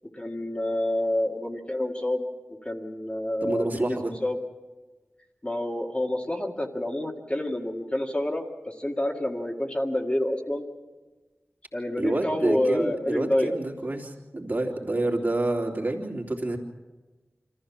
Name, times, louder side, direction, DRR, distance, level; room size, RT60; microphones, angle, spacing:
voice 1, 0.1-4.4 5.4-10.6 11.7-13.6, left 1 dB, 25° left, 1 dB, 2.0 m, -28 dB
voice 2, 3.4-4.1 12.0-16.6, right 2 dB, 45° right, 0 dB, 3.2 m, -28 dB
26.0 x 14.5 x 7.3 m, 1.2 s
wide cardioid pair, 60°, 5 cm